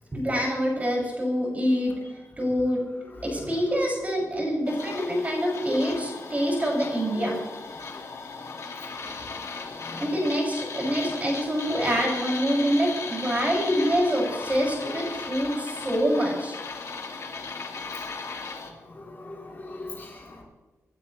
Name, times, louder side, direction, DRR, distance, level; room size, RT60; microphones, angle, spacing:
voice 1, 0.1-2.0 2.4-2.8 3.2-7.4 10.0-16.6, equal, 25° right, -2 dB, 6.6 m, -26 dB
sound 1, 4.6-18.7, left 4 dB, 55° left, 2.4 m, -37 dB
voice 2, 9.8-10.1 13.6-13.9 18.7-20.4, left 2 dB, 35° left, -3 dB, 4.1 m, -36 dB
28.0 x 12.0 x 3.3 m, 1.2 s
wide cardioid pair, 110°, 6 cm